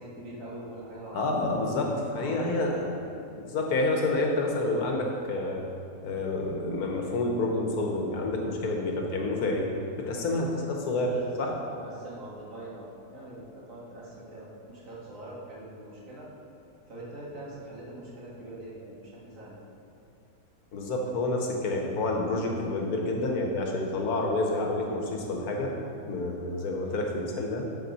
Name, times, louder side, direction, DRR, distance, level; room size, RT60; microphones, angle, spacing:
voice 1, 0.0-1.4 2.1-2.9 10.8-16.3 16.9-19.0 19.2-19.6 21.8-21.9, right 1 dB, 60° right, -6 dB, 2.1 m, -43 dB
voice 2, 1.1-2.8 3.4-5.6 6.0-9.7 10.0-11.1 11.4-11.5 20.7-25.7 26.1-27.7, left 2 dB, 85° left, 1 dB, 1.5 m, -28 dB
11.5 x 4.6 x 4.1 m, 2.7 s
omnidirectional pair, 1.6 m